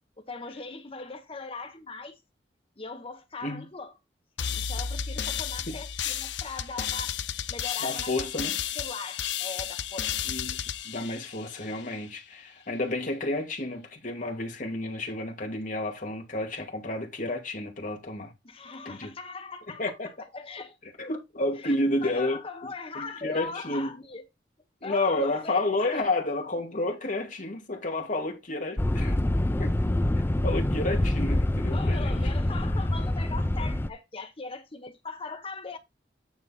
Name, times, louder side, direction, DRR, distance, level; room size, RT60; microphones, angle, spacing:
voice 1, 0.2-2.2 2.8-3.9 4.5-7.2 7.5-8.4 8.8-10.1 18.4-20.0 20.3-20.8 21.6-21.7 22.0-24.2 24.8-26.1 31.7-35.8, left 4 dB, 30° left, 1.1 m, -40 dB
sound 1, 4.4-11.9, left 9 dB, 85° left, 0.7 m, -33 dB
voice 2, 7.8-8.5 10.3-18.3 18.9-19.1 19.8-20.1 21.0-22.4 23.0-24.0 24.8-29.2 29.6-29.8 30.4-32.2, left 2 dB, 50° left, 2.2 m, -30 dB
sound 2, 28.8-33.9, left 1 dB, 15° left, 0.5 m, -26 dB
9.4 x 4.2 x 4.1 m
head